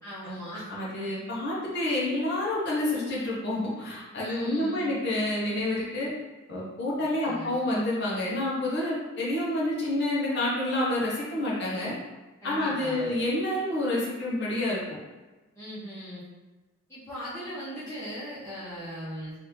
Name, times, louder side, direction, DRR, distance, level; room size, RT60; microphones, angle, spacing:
voice 1, 0.0-0.7 1.0-1.1 4.2-5.0 6.9-7.5 12.4-13.1 15.5-16.2 16.9-19.3, equal, 15° left, -14 dB, 1.0 m, -39 dB
voice 2, 0.7-6.1 6.5-11.9 12.4-14.8, left 1 dB, 50° left, -6 dB, 1.0 m, -28 dB
3.3 x 2.7 x 3.1 m, 1.2 s
head